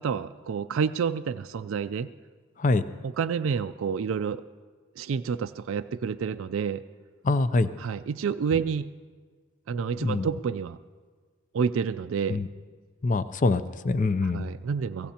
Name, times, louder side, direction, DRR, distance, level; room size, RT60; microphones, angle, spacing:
voice 1, 0.0-2.1 3.0-4.4 5.0-6.8 7.8-8.9 9.7-10.8 11.5-12.4 14.2-15.1, right 6 dB, 65° right, 11 dB, 0.3 m, -29 dB
voice 2, 7.2-7.7 10.0-10.3 12.3-12.5 13.0-14.5, left 3 dB, 35° left, 13 dB, 0.5 m, -24 dB
26.0 x 16.5 x 2.9 m, 1.6 s
head